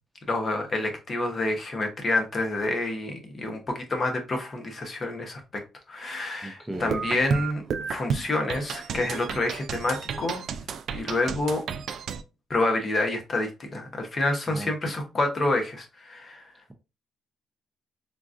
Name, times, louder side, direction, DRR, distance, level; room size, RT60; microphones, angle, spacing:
voice 1, 0.3-5.6 5.9-7.6 7.9-10.4 10.9-11.6 12.5-16.5, left 2 dB, 35° left, 0.9 m, -28 dB
voice 2, 6.4-7.0 14.5-14.7, right 1 dB, 10° right, 0.6 m, -36 dB
sound 1, 6.7-12.2, right 6 dB, 65° right, 0.3 m, -32 dB
3.7 x 2.4 x 2.4 m
cardioid pair, 90°, 0 cm